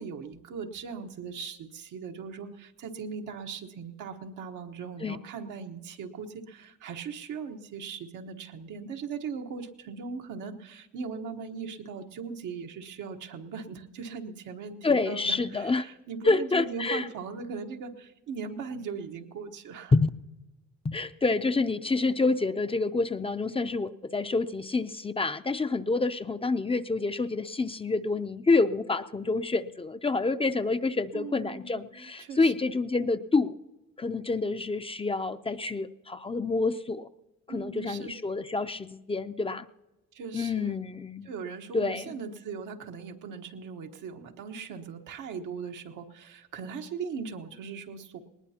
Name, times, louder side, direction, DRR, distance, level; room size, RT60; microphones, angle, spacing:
voice 1, 0.0-19.9 31.1-32.5 37.5-38.1 40.1-40.8 41.2-48.2, right 5 dB, 85° right, 3 dB, 1.3 m, -39 dB
voice 2, 14.8-15.9 16.2-17.1 19.9-20.1 20.8-33.5 34.0-37.1 37.5-39.7 40.3-41.3 41.7-42.2, left 3 dB, 20° left, 10 dB, 0.5 m, -28 dB
20.0 x 19.0 x 2.9 m, 1.0 s
cardioid pair, 90°, 30 cm